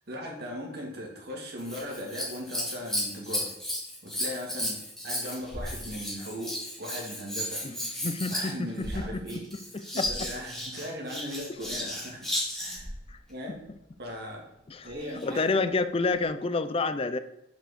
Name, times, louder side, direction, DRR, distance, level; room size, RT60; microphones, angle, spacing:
voice 1, 0.1-3.5 4.0-7.6 8.3-9.4 9.9-12.3 12.5-12.9 13.3-13.6 14.0-14.5 14.8-15.4, equal, 60° right, -1 dB, 2.4 m, -38 dB
Scissors, 1.6-12.9 14.9-15.5 16.2-16.3, left 1 dB, ahead, 2.4 m, -34 dB
voice 2, 8.0-9.4 9.7-10.1 13.1-13.2 14.7-14.9 15.2-17.2, left 3 dB, 30° left, 11 dB, 0.5 m, -29 dB
6.2 x 5.3 x 6.5 m, 0.85 s
head